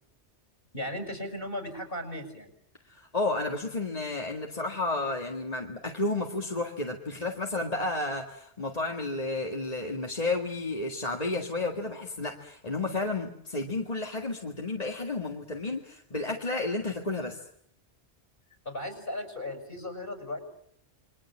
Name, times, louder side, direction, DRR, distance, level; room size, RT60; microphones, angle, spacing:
voice 1, 0.7-2.5 18.6-20.4, left 1 dB, 50° left, 7 dB, 6.4 m, -36 dB
voice 2, 2.9-17.4, left 2 dB, 35° left, 1 dB, 2.0 m, -32 dB
28.5 x 23.0 x 7.4 m, 0.69 s
omnidirectional pair, 1.1 m